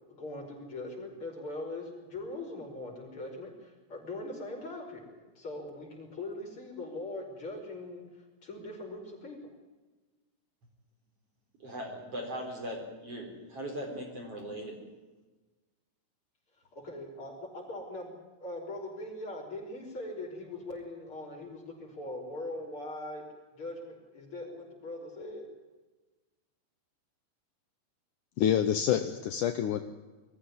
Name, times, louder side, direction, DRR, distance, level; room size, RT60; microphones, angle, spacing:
voice 1, 0.1-8.0 8.4-9.4 16.7-23.2 23.6-25.5, left 2 dB, 30° left, 0 dB, 6.1 m, -41 dB
voice 2, 11.6-14.9, equal, 35° right, 2 dB, 4.9 m, -39 dB
voice 3, 28.4-29.8, left 9 dB, 75° left, 8 dB, 1.9 m, -27 dB
22.5 x 14.5 x 9.8 m, 1.2 s
omnidirectional pair, 4.9 m